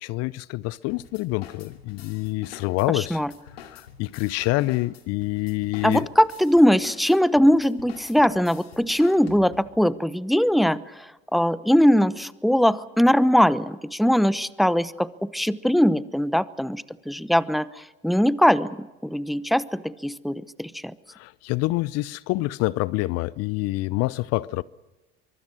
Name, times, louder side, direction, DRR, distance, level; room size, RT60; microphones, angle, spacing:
voice 1, 0.0-3.2 3.6-6.1 21.1-24.6, left 20 dB, 55° left, 0.7 m, -27 dB
sound 1, 0.9-9.8, left 8 dB, 85° left, 2.5 m, -47 dB
voice 2, 2.9-3.3 5.8-20.9, equal, ahead, 0.9 m, -21 dB
24.0 x 23.5 x 6.4 m
hypercardioid pair, 70°, 30 cm